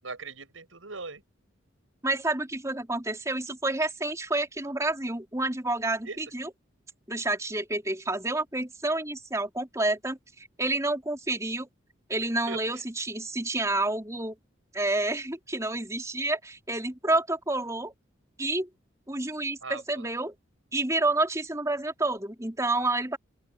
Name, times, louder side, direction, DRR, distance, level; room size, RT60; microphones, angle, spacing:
voice 1, 0.0-1.2 6.1-6.2 12.5-12.8 19.6-20.1, right 4 dB, 85° right, 7.5 m, -40 dB
voice 2, 2.0-6.5 7.1-11.7 12.1-14.4 14.7-17.9 18.4-18.7 19.1-20.3 20.7-23.2, right 2 dB, 15° right, 4.0 m, -29 dB
open air
head